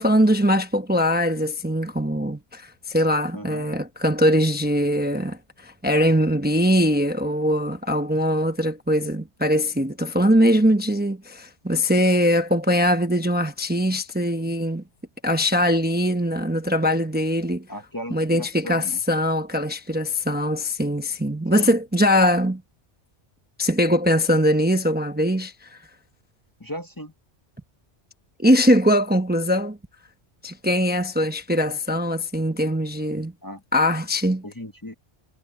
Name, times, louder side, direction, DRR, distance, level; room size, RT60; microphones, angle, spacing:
voice 1, 0.0-14.8 15.2-17.7 18.1-22.6 23.6-25.8 28.4-29.8 30.4-33.3 33.7-34.4, equal, 10° right, 0.9 m, -21 dB
voice 2, 3.3-3.7 17.7-19.0 21.5-21.7 26.6-27.1 33.4-33.6 34.4-34.9, equal, 20° left, 1.1 m, -36 dB
omnidirectional pair, 1.1 m